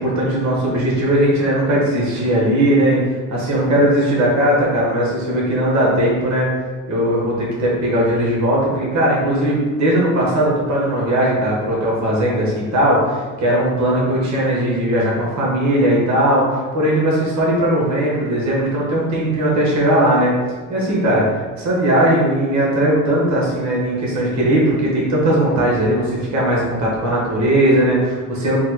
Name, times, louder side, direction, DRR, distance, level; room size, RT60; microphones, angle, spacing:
voice 1, 0.0-3.0 3.3-6.5 6.9-20.3 20.7-28.6, right 1 dB, 50° right, -4 dB, 1.3 m, -18 dB
3.7 x 2.2 x 3.1 m, 1.4 s
supercardioid pair, 70°, 35 cm